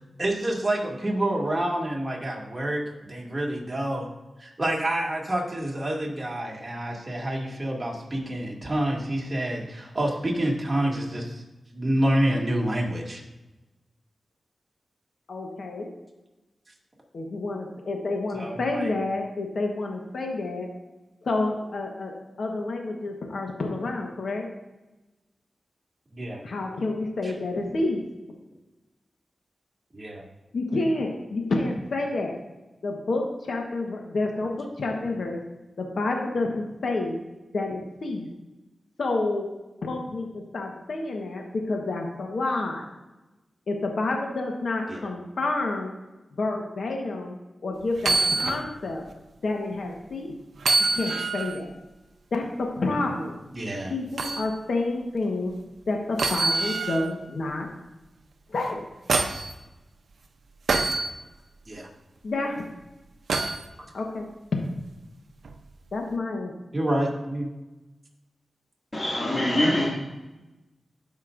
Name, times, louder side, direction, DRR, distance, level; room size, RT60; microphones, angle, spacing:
voice 1, 0.2-4.1 4.4-11.4 11.7-13.2 18.3-18.9 26.1-26.4 27.2-27.3 29.9-30.2 44.9-45.0 53.5-53.9 61.7-61.9 66.7-67.5, right 1 dB, 30° right, -2 dB, 2.3 m, -28 dB
voice 2, 15.3-15.9 17.1-20.7 21.2-24.5 26.4-28.0 30.5-32.4 32.8-35.4 35.8-37.2 37.5-38.3 39.0-39.5 39.8-42.9 43.7-45.9 46.4-47.4 47.6-49.0 49.4-50.3 50.9-51.7 52.3-53.4 53.9-55.5 55.9-57.7 58.5-58.8 62.2-62.7 63.9-64.3 65.9-66.5, left 2 dB, 75° left, 1 dB, 1.2 m, -29 dB
sound 1, 48.0-48.6 49.1-49.2 50.6-51.6 54.2-54.5 56.2-57.1 58.6-59.5 60.7-61.1 63.3-63.7 65.4-65.6, right 3 dB, 80° right, 0.6 m, -25 dB
voice 3, 68.9-69.9, left 1 dB, 25° left, -8 dB, 2.2 m, -23 dB
13.0 x 5.2 x 2.5 m, 1.1 s
cardioid pair, 55°, 0 cm